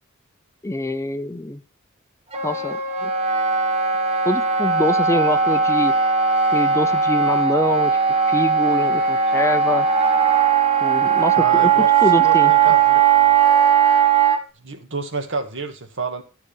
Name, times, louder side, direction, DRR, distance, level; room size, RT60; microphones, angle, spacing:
voice 1, 0.6-1.6 2.4-3.1 4.2-5.9 6.5-8.0 8.3-9.9 10.8-12.5, left 1 dB, 15° left, 12 dB, 0.5 m, -25 dB
Wind instrument woodwind instrument, 2.3-14.4, right 6 dB, 30° right, 1.6 m, -18 dB
voice 2, 11.4-11.9 12.2-13.4 14.6-16.2, right 4 dB, 65° right, 6 dB, 1.9 m, -29 dB
13.0 x 4.9 x 7.1 m, 0.33 s
head